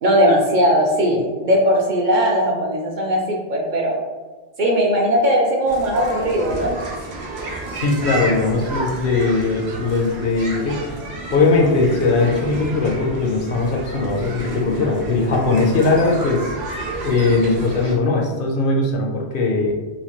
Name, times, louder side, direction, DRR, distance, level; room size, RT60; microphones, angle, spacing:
voice 1, 0.0-4.0 4.6-6.7, equal, 60° right, -1 dB, 0.6 m, -18 dB
sound 1, 5.7-18.0, right 2 dB, 85° right, 1.0 m, -31 dB
voice 2, 7.7-10.8 11.3-16.5 17.0-19.8, left 3 dB, 65° left, 0 dB, 0.7 m, -19 dB
3.1 x 2.5 x 2.9 m, 1.3 s
omnidirectional pair, 1.1 m